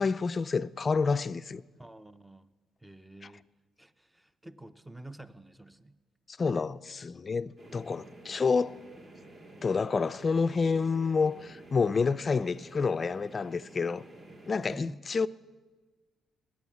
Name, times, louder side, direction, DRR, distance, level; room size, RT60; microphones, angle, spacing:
voice 1, 0.0-1.6 6.3-8.8 9.6-14.0 14.5-15.3, left 5 dB, 35° left, 0.4 m, -28 dB
voice 2, 1.8-2.5 2.8-3.5 3.8-6.0 14.6-15.1, right 2 dB, 5° right, 0.7 m, -48 dB
sound 1, 7.6-14.5, right 2 dB, 45° right, 2.9 m, -51 dB
20.0 x 8.5 x 7.2 m
cardioid pair, 90°, 0 cm